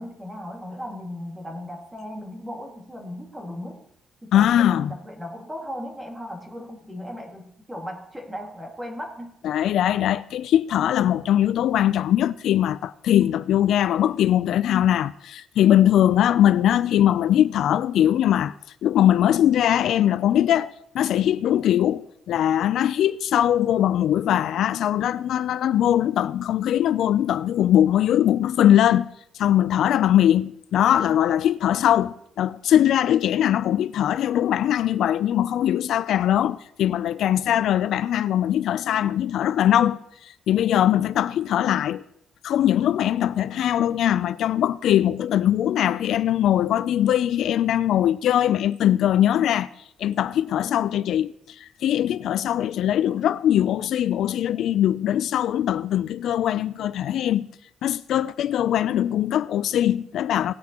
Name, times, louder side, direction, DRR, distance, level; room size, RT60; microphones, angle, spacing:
voice 1, 0.0-3.8 4.2-9.3, equal, 10° right, 2.0 m, -36 dB
voice 2, 4.3-4.9 9.4-18.5 18.8-29.1 29.3-42.0 42.4-49.7 50.0-57.5 57.8-60.5, left 11 dB, 70° left, 0.3 m, -21 dB
18.5 x 9.4 x 2.9 m
cardioid pair, 125°, 0 cm